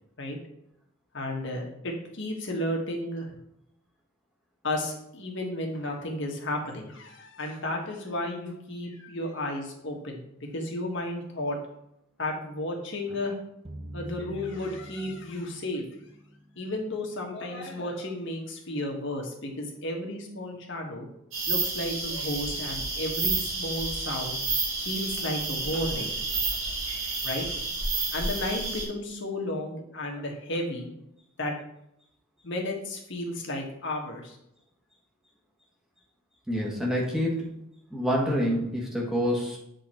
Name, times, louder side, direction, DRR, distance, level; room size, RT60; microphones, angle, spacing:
voice 1, 1.1-3.3 4.6-11.6 12.2-13.4 13.9-15.8 16.6-21.1 21.5-24.4 24.8-26.7 27.2-27.6 28.1-30.9 31.4-31.5 32.4-34.4, left 1 dB, 60° left, 1 dB, 1.4 m, -33 dB
sound 1, 13.7-17.4, right 1 dB, 30° right, 0.6 m, -45 dB
sound 2, 21.3-28.8, right 3 dB, 70° right, 2.9 m, -30 dB
voice 2, 36.5-37.4 37.9-39.6, equal, 5° right, -3 dB, 1.5 m, -27 dB
7.9 x 3.8 x 4.3 m, 0.78 s
head